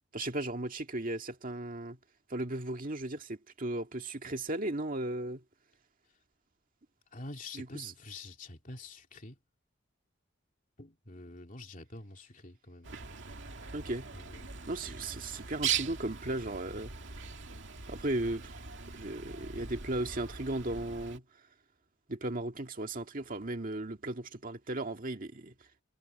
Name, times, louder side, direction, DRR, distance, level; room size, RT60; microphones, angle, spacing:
voice 1, 0.1-2.0 2.3-5.4 7.5-7.9 13.7-14.1 14.7-16.9 17.9-18.6 18.9-21.2 22.1-25.5, right 2 dB, 45° right, 1.9 m, -36 dB
voice 2, 7.1-9.4 10.8-12.9 14.1-14.5, left 2 dB, 40° left, 2.8 m, -47 dB
Bird, 12.8-21.2, right 7 dB, 60° right, 2.4 m, -40 dB
head